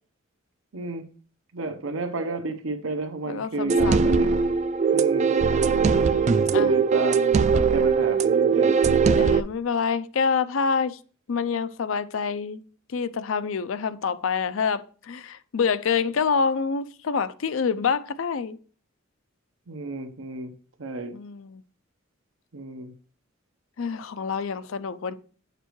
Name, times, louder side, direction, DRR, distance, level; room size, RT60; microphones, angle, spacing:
voice 1, 0.7-1.1 1.5-4.3 4.9-5.3 6.3-8.8 19.7-20.5 20.8-21.1 22.5-22.9, right 2 dB, 85° right, 0.9 m, -31 dB
voice 2, 3.3-4.2 5.8-6.7 9.2-11.0 11.3-12.6 12.9-18.6 21.1-21.6 23.8-25.1, left 5 dB, 75° left, 0.5 m, -27 dB
sound 1, 3.7-9.4, right 5 dB, 35° right, 0.3 m, -20 dB
9.1 x 6.7 x 3.1 m
head